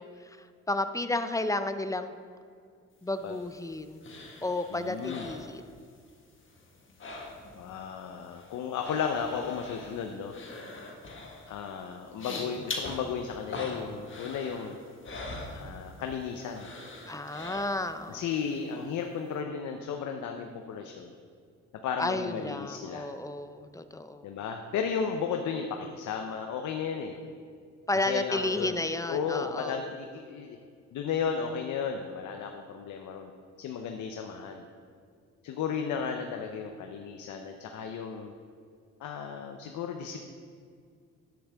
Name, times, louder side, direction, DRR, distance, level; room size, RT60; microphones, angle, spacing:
voice 1, 0.0-2.1 3.0-4.1 4.4-5.6 17.1-18.3 22.0-24.3 27.9-29.8, left 2 dB, 10° left, 10 dB, 0.5 m, -32 dB
sound 1, 3.1-6.1 6.4-7.8 8.0-16.2 16.5-18.1 18.5-18.6, left 2 dB, 40° left, 1.6 m, -42 dB
voice 2, 4.7-5.3 7.5-10.3 11.5-14.8 15.5-16.7 18.1-21.1 21.8-23.1 24.2-27.1 27.9-28.8 29.1-30.6 30.9-33.3 33.6-34.7 35.4-38.3 39.0-40.2, left 6 dB, 75° left, 4 dB, 0.8 m, -34 dB
10.0 x 9.4 x 3.5 m, 2.2 s
cardioid pair, 90°, 30 cm